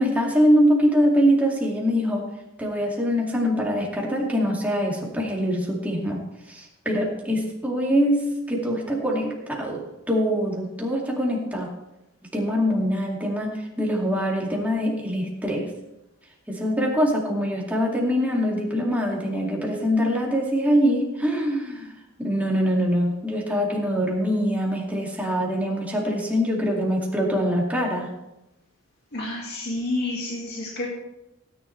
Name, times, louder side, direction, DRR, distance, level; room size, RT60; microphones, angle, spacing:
voice 1, 0.0-2.2 2.6-6.2 6.5-11.7 12.3-15.7 16.5-21.9 22.2-28.1, equal, 5° right, -3 dB, 2.4 m, -23 dB
voice 2, 29.1-30.9, left 2 dB, 50° left, -4 dB, 2.2 m, -29 dB
17.5 x 10.0 x 3.3 m, 0.94 s
head